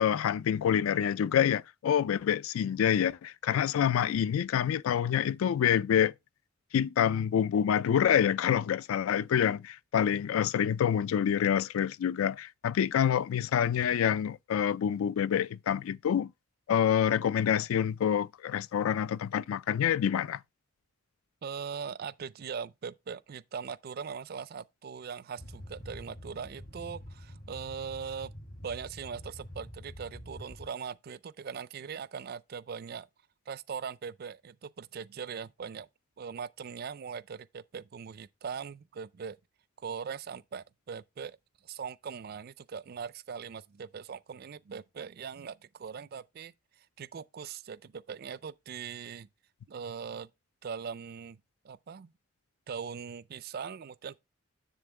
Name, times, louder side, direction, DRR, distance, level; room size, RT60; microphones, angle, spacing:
voice 1, 0.0-6.1 6.7-16.3 16.7-20.4, left 9 dB, 75° left, 0.3 m, -27 dB
voice 2, 21.4-28.3 28.6-33.1 33.5-35.9 36.2-39.4 39.8-41.4 41.6-49.3 49.7-50.3 50.6-51.4 51.6-52.1 52.7-54.2, right 6 dB, 45° right, 0.3 m, -40 dB
sound 1, 25.4-30.7, equal, 45° left, 1.6 m, -46 dB
7.3 x 7.1 x 3.1 m
head